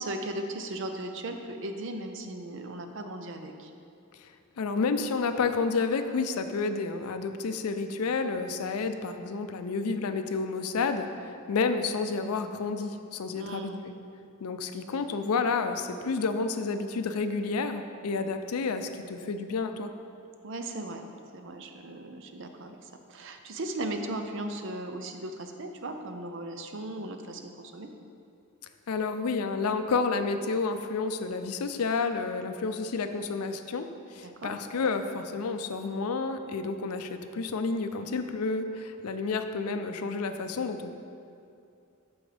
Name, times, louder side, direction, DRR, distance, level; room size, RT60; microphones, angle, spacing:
voice 1, 0.0-3.7 13.4-13.8 20.4-21.0 21.3-27.9 34.2-34.5, right 1 dB, 55° right, 5 dB, 0.6 m, -37 dB
voice 2, 4.6-13.7 14.4-19.9 28.9-40.9, left 4 dB, 85° left, 8 dB, 0.5 m, -30 dB
8.8 x 6.1 x 3.4 m, 2.6 s
head